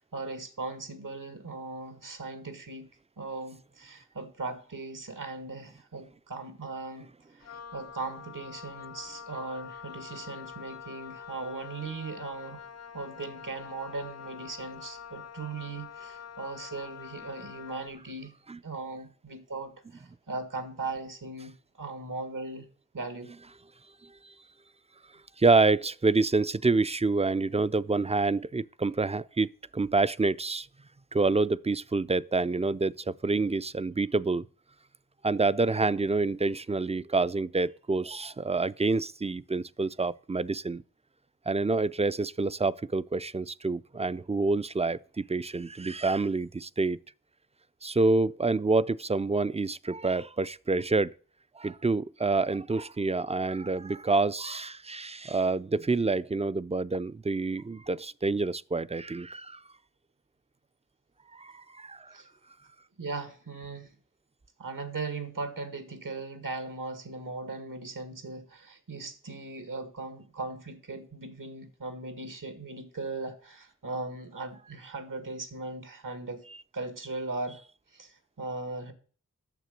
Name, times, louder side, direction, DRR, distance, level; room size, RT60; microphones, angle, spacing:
voice 1, 0.1-2.9 3.2-12.6 12.9-18.3 18.6-22.7 22.9-23.3 62.1-62.3 63.0-63.9 64.6-76.4 76.7-77.6 77.9-78.9, right 3 dB, 80° right, 1.8 m, -38 dB
Wind instrument woodwind instrument, 7.4-18.0, left 7 dB, 50° left, 0.5 m, -46 dB
voice 2, 25.4-30.7 31.1-34.4 35.2-40.8 41.5-47.0 47.8-51.1 51.6-59.6 61.3-62.1, right 3 dB, 20° right, 0.4 m, -27 dB
9.3 x 6.8 x 6.5 m
wide cardioid pair, 60°, 32 cm